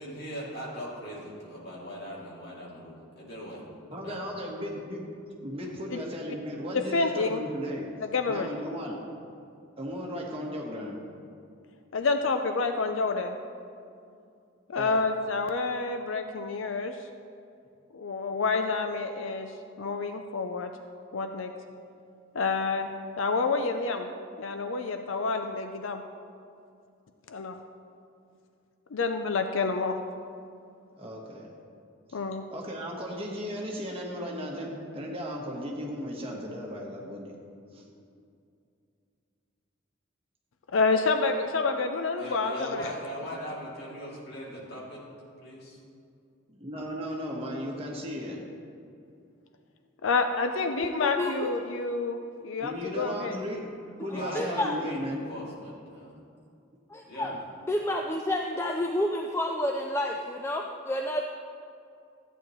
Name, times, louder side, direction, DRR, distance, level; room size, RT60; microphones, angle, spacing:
voice 1, 0.0-3.6 3.9-4.2 5.5-5.7 42.2-45.0 45.4-45.8 54.1-56.1 57.1-57.4, equal, 55° left, -5 dB, 2.7 m, -39 dB
voice 2, 3.9-5.1 5.4-7.9 8.3-9.0 9.8-11.0 14.8-15.0 31.0-31.5 32.1-32.2 32.5-37.3 37.7-37.9 46.5-48.4 52.6-53.7 54.0-55.2 57.2-57.3, equal, 30° right, -2 dB, 1.3 m, -36 dB
voice 3, 6.7-7.4 8.0-8.5 11.9-13.4 14.7-17.0 17.9-19.5 19.8-20.7 21.1-21.5 22.3-22.9 23.2-24.1 24.4-26.0 27.3-27.6 28.9-30.0 32.1-32.4 40.7-42.9 50.0-53.4, left 4 dB, 75° left, 6 dB, 0.5 m, -28 dB
voice 4, 50.9-51.5 54.1-54.8 56.9-57.4 57.7-61.2, left 1 dB, 10° left, 2 dB, 0.4 m, -30 dB
14.0 x 9.0 x 3.1 m, 2.4 s
head